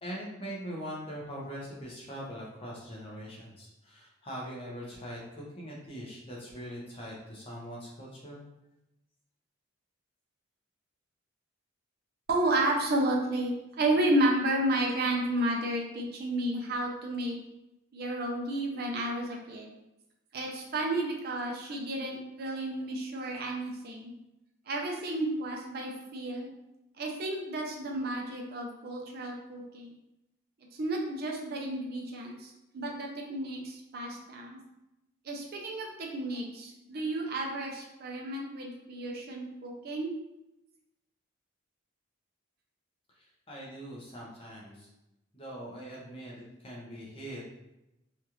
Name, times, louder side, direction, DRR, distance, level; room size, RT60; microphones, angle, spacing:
voice 1, 0.0-8.4 43.5-44.9 45.3-47.4, equal, 30° left, -5 dB, 0.8 m, -42 dB
voice 2, 12.3-17.4 17.9-19.7 20.3-24.1 24.7-26.5 27.0-29.9 30.7-34.6 35.2-40.1, right 1 dB, 50° right, 0 dB, 0.5 m, -32 dB
3.1 x 2.4 x 2.9 m, 0.91 s
head